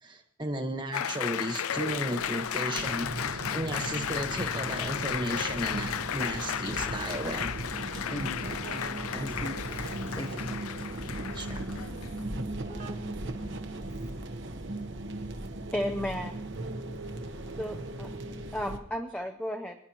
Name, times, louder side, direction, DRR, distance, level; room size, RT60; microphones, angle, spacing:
voice 1, 0.0-7.5 9.1-9.5 11.3-11.6, right 1 dB, 20° right, 4 dB, 1.4 m, -34 dB
Applause, 0.9-12.3, left 9 dB, 85° left, 0.4 m, -34 dB
sound 1, 1.7-18.8, right 1 dB, 55° right, 1.1 m, -38 dB
Keyboard (musical), 7.7-15.6, right 1 dB, 35° right, 1.0 m, -46 dB
voice 2, 8.0-9.7 10.1-10.9, left 1 dB, 25° left, 3 dB, 1.5 m, -41 dB
voice 3, 15.7-16.3 17.6-19.8, equal, 5° left, 4 dB, 0.5 m, -34 dB
25.5 x 10.5 x 3.0 m, 0.75 s
head